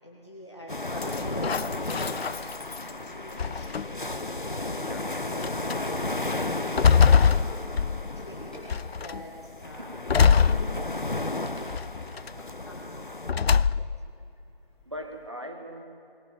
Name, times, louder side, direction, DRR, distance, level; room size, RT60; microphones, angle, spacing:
voice 1, 0.0-2.2 2.8-4.3 4.6-4.9 5.3-7.9 8.2-8.5 9.0-10.0 10.5-10.9 12.7-13.2, equal, 25° left, -3 dB, 1.7 m, -46 dB
sound 1, 0.7-13.3, left 2 dB, 55° left, 1.0 m, -34 dB
sound 2, 1.0-2.9 3.4-4.1 4.9-5.0 5.4-5.8 6.3-8.3 8.7-9.2 10.1-11.2 11.7-12.3 13.3-14.1, left 6 dB, 80° left, 0.5 m, -23 dB
sound 3, 5.6-6.6 7.0-9.3 9.6-9.7 10.0-11.2, equal, 10° left, 2.3 m, -49 dB
voice 2, 10.4-10.9 11.5-11.6 12.3-12.5 13.8-13.9 14.9-15.9, equal, 30° right, 4 dB, 1.6 m, -41 dB
22.0 x 17.5 x 7.4 m, 3.0 s
figure-of-eight pair, 175°, 30 cm